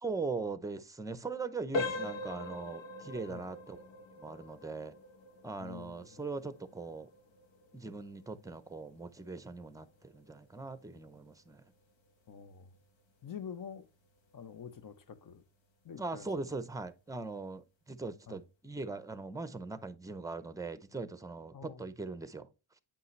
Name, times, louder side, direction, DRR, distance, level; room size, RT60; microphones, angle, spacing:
voice 1, 0.0-3.9 4.2-4.9 5.4-7.1 7.7-11.6 16.0-22.5, right 3 dB, 5° right, 0.6 m, -40 dB
sound 1, 1.7-12.4 12.8-13.0 13.6-13.7 14.2-14.3, left 2 dB, 75° left, 1.4 m, -43 dB
voice 2, 5.6-6.2 12.3-12.7 13.2-13.9 14.3-15.4 15.8-16.3 18.3-18.4 21.5-21.9, left 7 dB, 45° left, 0.8 m, -46 dB
8.6 x 5.5 x 3.2 m
cardioid pair, 85°, 46 cm